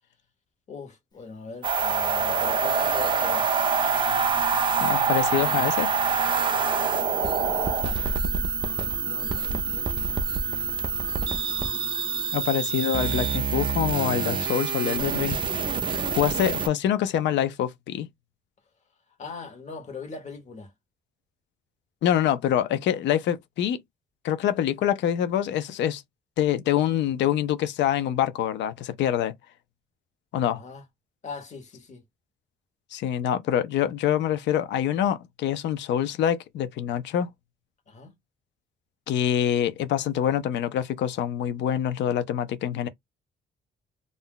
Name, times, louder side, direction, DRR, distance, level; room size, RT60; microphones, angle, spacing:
voice 1, 0.7-3.5 7.8-9.9 10.6-11.1 19.2-20.7 30.5-30.8 31.2-32.0 37.9-38.1, left 4 dB, 40° left, 1.2 m, -41 dB
sound 1, 1.6-16.7, right 5 dB, 25° right, 0.5 m, -26 dB
Singing, 2.1-12.8, left 1 dB, 20° left, 0.9 m, -44 dB
voice 2, 4.8-5.9 12.3-15.4 16.1-18.1 22.0-23.8 24.2-26.0 26.4-29.3 30.3-30.6 32.9-37.3 39.1-42.9, left 10 dB, 80° left, 0.5 m, -25 dB
2.5 x 2.1 x 3.6 m
cardioid pair, 135°, 18 cm